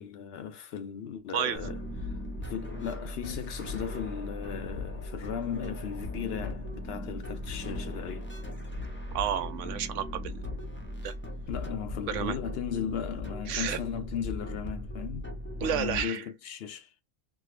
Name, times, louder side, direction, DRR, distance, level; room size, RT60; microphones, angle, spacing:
voice 1, 0.0-8.4 11.5-15.3 15.6-16.9, left 8 dB, 65° left, 0.7 m, -37 dB
voice 2, 1.3-1.6 9.1-10.5 11.0-11.1 12.1-12.4 13.5-13.8 15.6-16.2, right 9 dB, 85° right, 0.9 m, -31 dB
sound 1, 1.5-16.0, left 1 dB, 15° left, 0.5 m, -38 dB
3.5 x 2.0 x 3.1 m
omnidirectional pair, 1.3 m